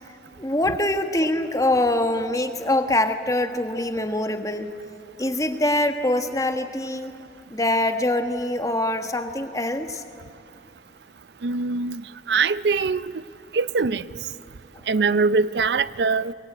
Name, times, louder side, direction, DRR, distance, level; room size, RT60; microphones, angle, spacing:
voice 1, 0.4-4.7 5.2-7.1 7.5-10.0, left 1 dB, 20° left, 7 dB, 1.3 m, -24 dB
voice 2, 11.4-12.0 12.3-13.1 13.5-14.0 14.9-16.3, right 4 dB, 70° right, 17 dB, 0.5 m, -22 dB
22.5 x 22.5 x 9.2 m, 2.7 s
head